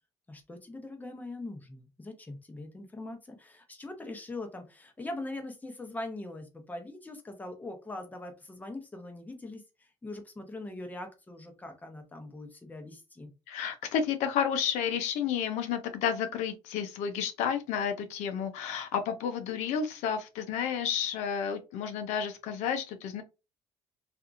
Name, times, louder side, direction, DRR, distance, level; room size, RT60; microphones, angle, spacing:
voice 1, 0.3-13.3, left 2 dB, 15° left, 0.8 m, -42 dB
voice 2, 13.5-23.2, left 7 dB, 90° left, 0.5 m, -31 dB
2.8 x 2.4 x 2.4 m
cardioid pair, 95°, 12 cm